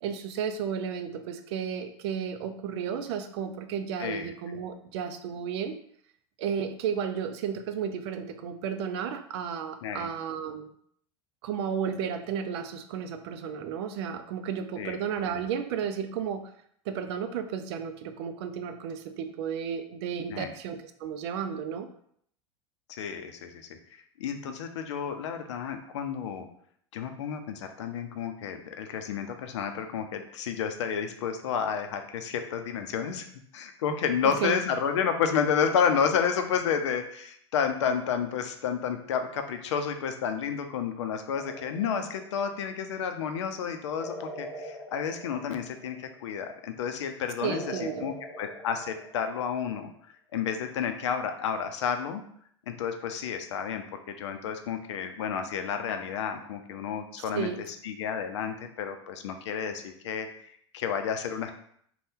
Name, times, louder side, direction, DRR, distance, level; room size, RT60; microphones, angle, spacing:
voice 1, 0.0-5.8 6.4-10.7 11.4-16.5 16.9-21.9 34.2-34.6 47.4-48.1 57.3-57.6, right 7 dB, 65° right, 9 dB, 0.4 m, -33 dB
voice 2, 4.0-4.3 9.8-10.1 14.8-15.0 20.3-20.5 22.9-23.5 24.2-26.5 26.9-33.3 33.5-49.9 50.3-52.2 52.7-61.5, left 7 dB, 80° left, 7 dB, 0.4 m, -31 dB
sound 1, 41.3-42.7 44.0-46.2 47.4-49.6, equal, 5° left, 0.6 m, -42 dB
2.7 x 2.2 x 3.4 m, 0.66 s
hypercardioid pair, 90°, 15 cm